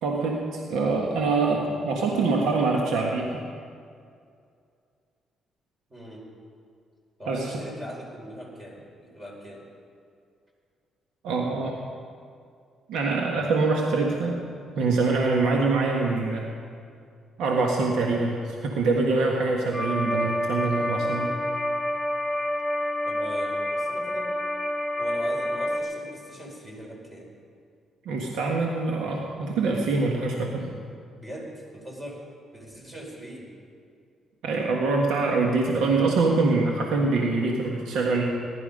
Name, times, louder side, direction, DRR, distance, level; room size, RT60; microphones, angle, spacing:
voice 1, 0.0-3.4 7.3-7.5 11.2-11.8 12.9-14.4 14.7-16.5 17.4-21.3 28.0-30.7 34.4-38.3, right 3 dB, 85° right, 0 dB, 1.5 m, -24 dB
voice 2, 5.9-6.3 7.2-9.7 23.1-24.3 25.0-27.3 31.1-32.2 32.5-33.5, equal, 20° right, -2 dB, 4.9 m, -40 dB
sound 1, 19.7-25.8, left 1 dB, 10° left, 3.4 m, -28 dB
19.0 x 11.5 x 5.4 m, 2.3 s
cardioid pair, 90°, 0 cm